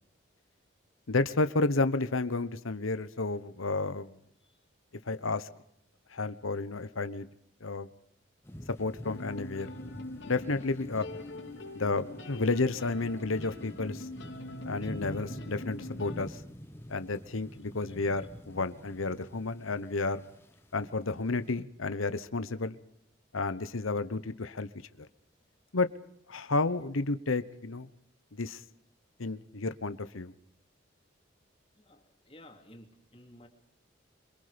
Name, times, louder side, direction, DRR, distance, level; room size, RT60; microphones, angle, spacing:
voice 1, 1.1-4.1 5.1-5.5 6.1-7.3 7.6-7.9 8.8-9.7 10.2-11.1 11.7-14.1 14.6-16.4 16.9-20.2 20.7-22.8 23.3-24.7 25.0-25.1 25.7-25.9 26.3-27.9 28.4-28.6 29.2-30.3, left 3 dB, 90° left, 12 dB, 1.1 m, -31 dB
sound 1, 8.4-21.6, equal, 10° left, 1.2 m, -47 dB
sound 2, 9.0-16.3, left 1 dB, 65° left, 3.8 m, -43 dB
voice 2, 31.8-33.5, left 1 dB, 25° left, 3 dB, 3.1 m, -54 dB
27.0 x 23.5 x 5.2 m, 0.73 s
head